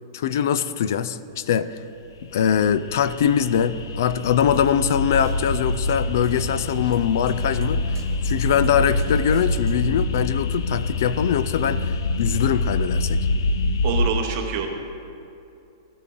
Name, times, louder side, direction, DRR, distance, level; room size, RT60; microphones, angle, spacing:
voice 1, 0.1-1.8 2.3-7.9 8.2-13.3, left 8 dB, 50° left, 15 dB, 0.4 m, -22 dB
sound 1, 2.1-14.1, left 2 dB, 90° left, 0.8 m, -25 dB
Drum kit, 4.5-10.0, right 4 dB, 85° right, 0.9 m, -40 dB
voice 2, 13.8-14.7, right 7 dB, 30° right, 3 dB, 0.7 m, -26 dB
14.0 x 8.5 x 3.8 m, 2.8 s
supercardioid pair, 180°, 2 cm